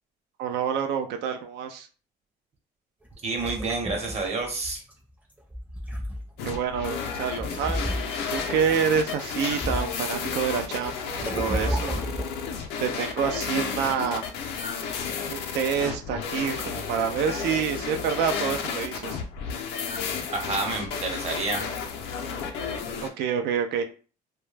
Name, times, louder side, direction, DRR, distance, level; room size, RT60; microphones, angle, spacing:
voice 1, 0.4-1.9 6.4-7.9 8.3-12.0 12.8-14.2 15.3-19.2 23.0-23.8, right 7 dB, 75° right, 6 dB, 0.4 m, -27 dB
sound 1, 3.1-4.9 5.4-6.5 7.4-8.5 9.0-10.2 10.5-12.6, equal, 10° right, 0.6 m, -32 dB
voice 2, 3.2-4.8 20.3-21.6, right 3 dB, 40° right, 2 dB, 0.8 m, -29 dB
sound 2, 6.4-23.1, left 6 dB, 85° left, 0.5 m, -32 dB
2.2 x 2.1 x 3.1 m, 0.38 s
cardioid pair, 110°, 17 cm